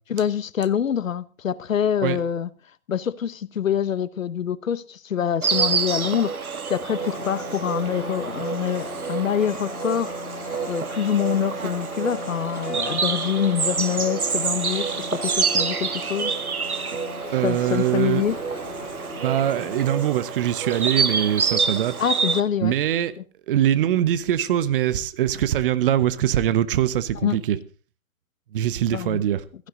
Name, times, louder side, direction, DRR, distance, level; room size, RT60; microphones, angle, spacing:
voice 1, 0.1-2.5 2.9-10.1 10.7-16.3 17.4-18.4 22.0-22.7 27.2-27.4 28.9-29.2, left 9 dB, 65° left, 1.0 m, -25 dB
Insect, 5.4-22.4, right 5 dB, 80° right, 1.7 m, -27 dB
sound 1, 6.9-19.9, left 5 dB, 40° left, 6.7 m, -39 dB
voice 2, 17.3-18.2 19.2-21.9 22.6-23.1 23.5-27.6 28.5-29.4, right 11 dB, 40° right, 1.2 m, -22 dB
sound 2, 18.2-21.5 24.1-24.2, right 2 dB, 10° right, 5.2 m, -46 dB
16.5 x 14.5 x 3.9 m
figure-of-eight pair, 130°, 43 cm